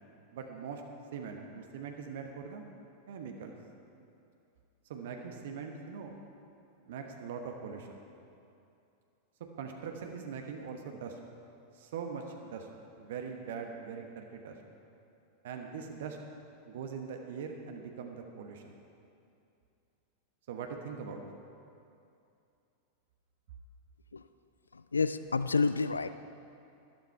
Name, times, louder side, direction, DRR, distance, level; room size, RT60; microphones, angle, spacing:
voice 1, 0.3-0.8 1.1-2.6 3.1-3.5 4.9-6.2 6.9-8.0 9.6-11.2 11.7-12.7 13.0-14.6 15.4-16.2 16.7-18.7 20.5-21.2, right 6 dB, 55° right, 3 dB, 1.1 m, -41 dB
voice 2, 24.7-26.1, left 4 dB, 75° left, 12 dB, 0.3 m, -29 dB
13.0 x 12.0 x 4.6 m, 2.6 s
figure-of-eight pair, 90°, 0 cm